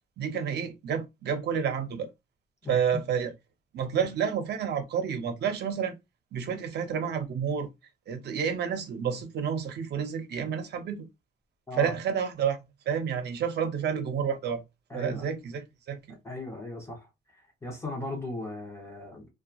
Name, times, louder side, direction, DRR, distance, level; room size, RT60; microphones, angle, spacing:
voice 1, 0.2-2.1 2.7-3.3 3.7-5.9 6.3-7.7 8.1-11.0 11.7-12.6 12.9-14.6 14.9-16.0, right 7 dB, 75° right, 0.7 m, -29 dB
voice 2, 2.6-3.0 11.7-11.9 14.9-15.3 16.2-19.3, left 2 dB, 15° left, 0.7 m, -38 dB
2.8 x 2.2 x 2.3 m
wide cardioid pair, 150°, 18 cm